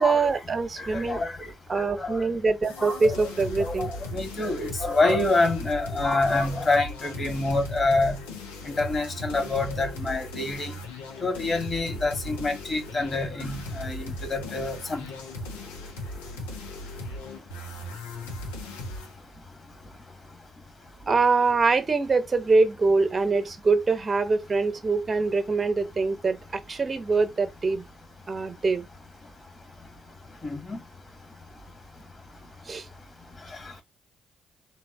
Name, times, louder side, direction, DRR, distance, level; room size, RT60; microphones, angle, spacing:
voice 1, 0.0-1.2 1.7-3.9 21.1-27.9 28.3-28.9 32.7-32.9, right 4 dB, 35° right, 0.9 m, -24 dB
voice 2, 0.8-2.2 2.8-3.2 3.6-8.2 8.6-10.7 11.2-15.1 30.4-30.8, left 2 dB, 35° left, 1.7 m, -27 dB
sound 1, 2.6-19.1, left 1 dB, 85° left, 1.0 m, -38 dB
4.1 x 3.7 x 2.7 m
hypercardioid pair, 45°, 0 cm